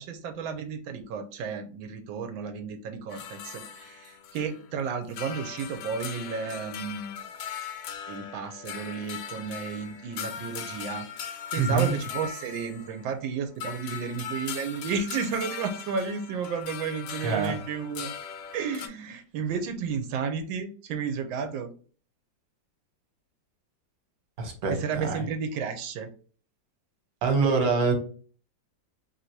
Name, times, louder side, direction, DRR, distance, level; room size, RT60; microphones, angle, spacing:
voice 1, 0.0-7.3 8.1-18.1 18.5-21.7 24.7-26.1, right 6 dB, 90° right, 7 dB, 1.4 m, -32 dB
sound 1, 3.1-4.7 5.0-13.3 13.6-18.9, left 8 dB, 80° left, 1.3 m, -39 dB
voice 2, 11.6-11.9 17.2-17.5 24.4-25.2 27.2-27.9, right 5 dB, 55° right, 3 dB, 1.4 m, -25 dB
3.3 x 2.7 x 4.3 m, 0.41 s
omnidirectional pair, 2.0 m